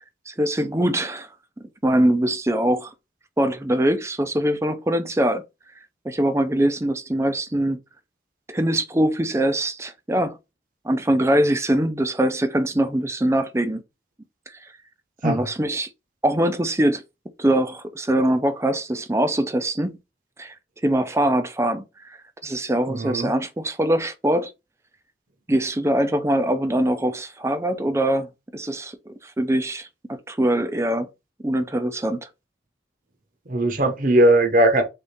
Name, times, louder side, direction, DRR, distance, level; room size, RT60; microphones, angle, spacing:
voice 1, 0.3-1.3 1.6-2.9 3.4-5.4 6.0-7.8 8.5-10.4 10.8-13.8 14.5-14.7 15.2-15.9 16.2-17.0 17.4-20.0 20.4-20.5 20.8-24.5 25.5-28.3 28.5-31.1 31.4-32.2, right 1 dB, 15° right, 0.5 m, -23 dB
voice 2, 22.9-23.3 33.5-34.8, right 1 dB, 45° right, 0.9 m, -19 dB
3.7 x 3.5 x 4.0 m
head